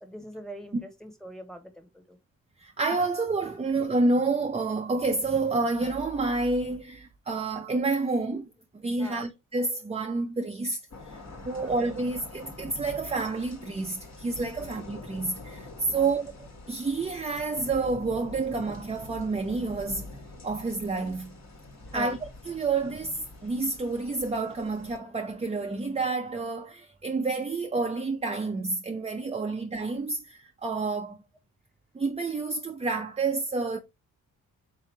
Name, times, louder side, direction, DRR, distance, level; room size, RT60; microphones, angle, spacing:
voice 1, 0.0-2.2 9.0-9.2 11.5-12.0 14.6-14.7 15.9-16.1 21.8-22.1, equal, ahead, 1.1 m, -43 dB
voice 2, 2.6-11.2 11.4-16.3 16.7-20.1 20.4-21.3 21.9-22.2 22.5-31.2 31.9-33.8, right 3 dB, 20° right, 0.5 m, -29 dB
sound 1, 10.9-25.0, left 2 dB, 45° left, 1.5 m, -45 dB
3.7 x 2.9 x 3.2 m
cardioid pair, 60°, 36 cm